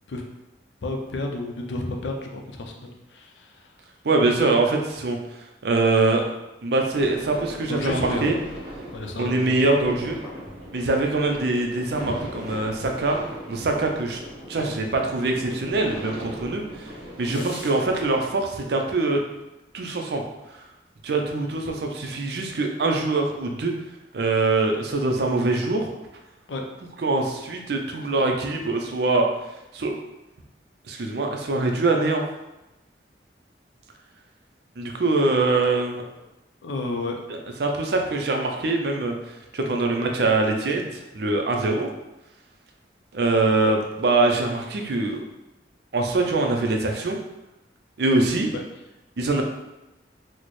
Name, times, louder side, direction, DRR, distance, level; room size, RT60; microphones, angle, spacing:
voice 1, 0.8-3.7 7.7-8.3 8.9-9.5 12.0-12.1 17.3-17.4 26.5-26.6 36.1-36.2 36.6-37.2 48.5-48.6, left 2 dB, 85° left, 2 dB, 0.5 m, -31 dB
voice 2, 4.0-5.2 5.6-6.2 6.6-8.4 9.2-10.2 10.7-13.2 13.5-14.2 14.5-16.9 17.2-19.2 19.7-20.2 21.0-23.7 24.1-25.9 27.0-29.3 29.7-29.9 30.9-32.2 34.8-36.0 37.6-39.1 39.5-41.9 43.1-45.2 45.9-47.2 48.0-48.5 49.2-49.4, right 3 dB, 60° right, 2 dB, 0.5 m, -23 dB
sound 1, 6.9-18.2, equal, 30° right, 1.0 m, -38 dB
4.2 x 2.1 x 3.1 m, 0.97 s
head